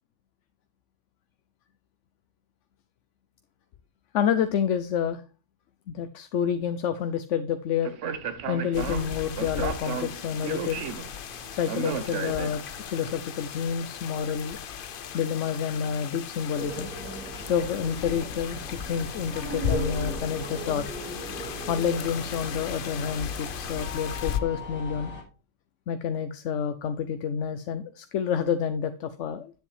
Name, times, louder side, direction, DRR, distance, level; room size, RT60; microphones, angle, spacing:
voice 1, 4.1-5.2 5.9-7.9 8.5-10.8 11.5-14.6 15.1-16.9 17.5-21.0 21.7-25.1 25.9-29.5, left 7 dB, 75° left, 10 dB, 1.0 m, -29 dB
Speech, 7.8-12.9, right 7 dB, 75° right, 1.2 m, -34 dB
sound 1, 8.7-24.4, left 8 dB, 55° left, 0.7 m, -37 dB
sound 2, 16.6-25.2, right 1 dB, 10° right, 4.9 m, -38 dB
9.8 x 8.0 x 3.2 m, 0.33 s
omnidirectional pair, 1.3 m